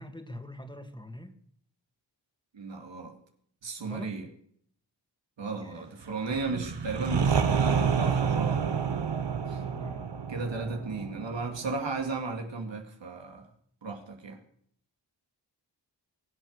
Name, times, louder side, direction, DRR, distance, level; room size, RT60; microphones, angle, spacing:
voice 1, 0.0-1.4 3.8-4.2 5.5-5.9 9.6-10.1, left 1 dB, 10° left, 7 dB, 2.1 m, -44 dB
voice 2, 2.5-3.1 3.6-4.3 5.4-8.6 9.5-9.6 10.3-13.5 13.8-14.4, right 3 dB, 90° right, 3 dB, 2.3 m, -35 dB
sound 1, 6.3-12.1, right 6 dB, 70° right, 1.3 m, -28 dB
22.0 x 8.0 x 6.5 m, 0.65 s
cardioid pair, 50°, 43 cm